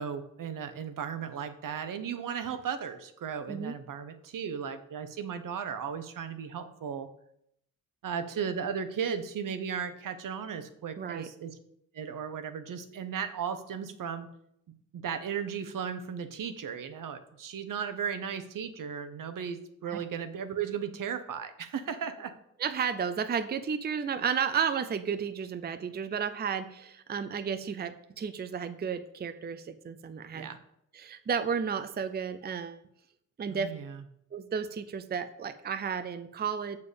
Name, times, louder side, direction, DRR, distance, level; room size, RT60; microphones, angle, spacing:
voice 1, 0.0-7.1 8.0-11.5 11.9-14.3 14.9-22.3 30.3-30.6 33.5-34.0, right 7 dB, 75° right, 9 dB, 0.9 m, -36 dB
voice 2, 11.0-11.3 19.9-20.0 22.6-30.5 30.9-32.8 33.4-33.7 34.3-36.8, right 6 dB, 30° right, 11 dB, 0.5 m, -32 dB
6.9 x 6.8 x 5.1 m, 0.74 s
wide cardioid pair, 115°, 32 cm